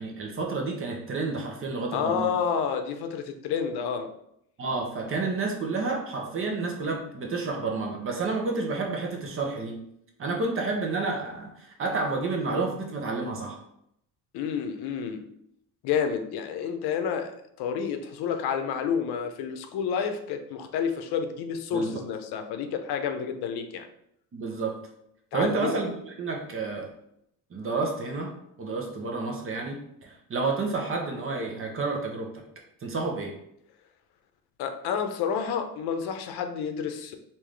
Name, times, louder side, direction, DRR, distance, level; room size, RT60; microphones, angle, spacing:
voice 1, 0.0-2.3 4.6-9.8 10.2-13.6 21.7-21.9 24.3-24.8 25.3-26.9 27.5-28.3 28.6-32.4 32.8-33.3, right 3 dB, 35° right, 1 dB, 0.8 m, -30 dB
voice 2, 1.9-4.1 14.3-15.2 15.8-17.3 17.6-23.9 25.3-25.7 34.6-37.1, left 7 dB, 85° left, 6 dB, 0.6 m, -29 dB
3.7 x 2.6 x 3.2 m, 0.75 s
cardioid pair, 135°, 38 cm